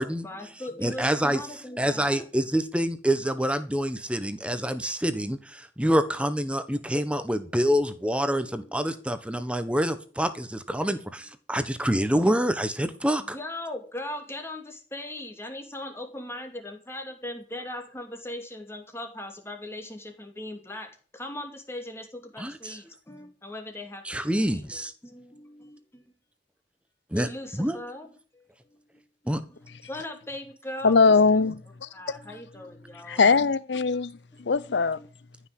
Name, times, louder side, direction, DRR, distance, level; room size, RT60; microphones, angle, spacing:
voice 1, 0.0-2.3 8.4-8.9 13.2-24.0 24.5-25.8 27.1-31.5 31.9-33.2 34.7-35.1, left 1 dB, 15° left, 2.5 m, -40 dB
voice 2, 0.8-1.4 1.8-13.3 22.4-22.8 24.1-24.9 27.1-27.3 27.6-27.8 29.3-29.4, equal, 5° right, 1.2 m, -26 dB
voice 3, 30.8-31.9 33.1-35.0, left 4 dB, 80° left, 0.6 m, -21 dB
14.5 x 6.2 x 8.5 m
head